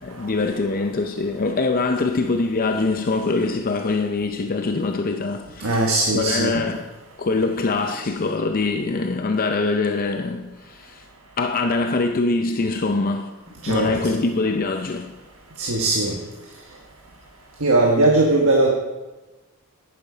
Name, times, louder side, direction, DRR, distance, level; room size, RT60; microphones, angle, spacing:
voice 1, 0.0-6.8 7.2-11.0 11.4-13.4 13.6-15.1, left 3 dB, 40° left, 0.5 m, -23 dB
voice 2, 5.6-6.6 13.6-14.2 15.6-16.1 17.6-18.7, right 2 dB, 75° right, 1.3 m, -19 dB
10.5 x 9.1 x 5.0 m
head